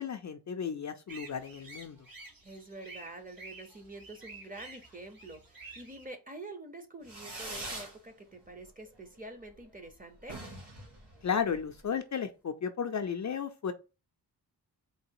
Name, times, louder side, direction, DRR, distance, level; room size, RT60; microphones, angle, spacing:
voice 1, 0.0-2.0 11.2-13.7, left 7 dB, 45° left, 0.4 m, -34 dB
sound 1, 1.1-6.1, right 3 dB, 60° right, 1.3 m, -50 dB
voice 2, 2.4-10.4, right 2 dB, 20° right, 0.8 m, -47 dB
Fireworks, 7.0-8.0 8.3-8.9 9.2-9.3 9.5-9.6 9.9-10.0 10.2-11.8, right 1 dB, 80° right, 1.9 m, -43 dB
3.9 x 2.7 x 4.6 m
wide cardioid pair, 115°, 40 cm